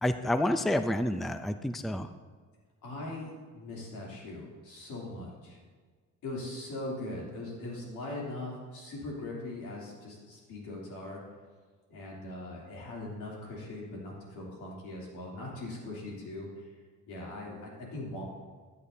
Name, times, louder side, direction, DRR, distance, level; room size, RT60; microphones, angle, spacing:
voice 1, 0.0-2.1, left 1 dB, ahead, 10 dB, 0.4 m, -29 dB
voice 2, 2.8-5.6 6.2-11.2 11.9-16.7 17.1-18.2, left 2 dB, 90° left, -3 dB, 3.1 m, -40 dB
15.0 x 8.6 x 2.7 m, 1.5 s
cardioid pair, 90°, 30 cm